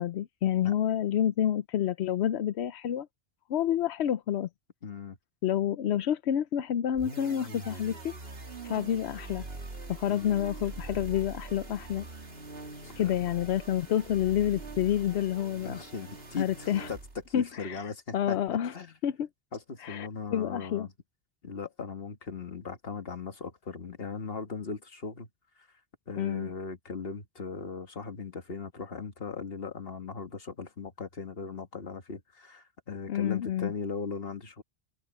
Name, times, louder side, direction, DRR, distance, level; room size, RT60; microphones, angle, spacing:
voice 1, 0.0-3.1 3.5-4.5 5.4-8.1 8.6-9.4 9.9-12.1 13.0-15.8 16.4-16.9 17.3-18.7 19.0-19.3 19.8-20.9 26.2-26.5 33.1-33.7, left 10 dB, 85° left, 0.9 m, -29 dB
voice 2, 4.8-5.2 10.1-10.4 12.8-13.2 15.6-17.0 17.3-18.4 18.7-18.9 19.5-20.9 21.4-25.3 26.1-34.6, left 4 dB, 65° left, 1.9 m, -38 dB
sound 1, 6.9-17.3, right 3 dB, 65° right, 2.5 m, -43 dB
omnidirectional pair, 1.1 m